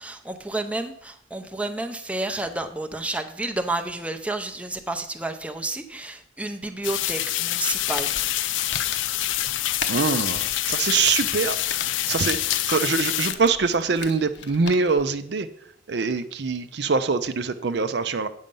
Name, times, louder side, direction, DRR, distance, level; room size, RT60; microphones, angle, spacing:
voice 1, 0.0-8.1, right 2 dB, 5° right, 5 dB, 0.5 m, -30 dB
sound 1, 6.8-13.3, left 14 dB, 85° left, 0.4 m, -26 dB
Crumpling crinkling, 7.7-15.1, left 6 dB, 60° left, 0.8 m, -37 dB
voice 2, 9.9-15.5 15.9-18.3, right 4 dB, 60° right, 10 dB, 0.5 m, -24 dB
8.9 x 6.4 x 5.4 m, 0.69 s
head